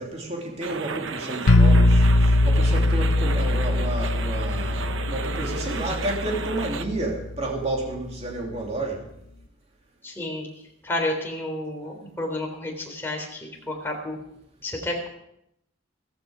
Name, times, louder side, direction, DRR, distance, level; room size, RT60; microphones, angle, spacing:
voice 1, 0.0-9.1, right 2 dB, 35° right, -1 dB, 2.9 m, -31 dB
sound 1, 0.6-6.9, right 5 dB, 75° right, 0.9 m, -34 dB
sound 2, 1.5-7.2, left 1 dB, 90° left, 1.0 m, -21 dB
voice 2, 10.0-10.5 10.8-14.2 14.6-15.1, left 1 dB, 10° left, 0 dB, 3.6 m, -30 dB
16.0 x 14.5 x 5.1 m, 0.78 s
head